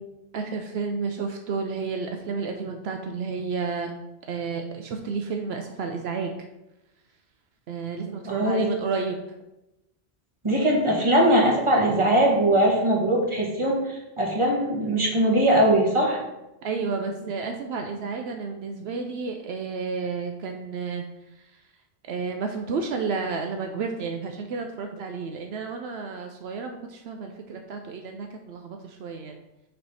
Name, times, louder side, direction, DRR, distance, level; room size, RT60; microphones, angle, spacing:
voice 1, 0.3-3.9 4.3-6.3 7.7-9.2 16.6-21.0 21.4-21.5 22.1-29.4, right 5 dB, 75° right, 4 dB, 0.8 m, -31 dB
voice 2, 8.2-8.7 10.4-16.2, right 1 dB, 30° right, -2 dB, 1.5 m, -21 dB
6.6 x 3.4 x 5.5 m, 0.94 s
omnidirectional pair, 1.1 m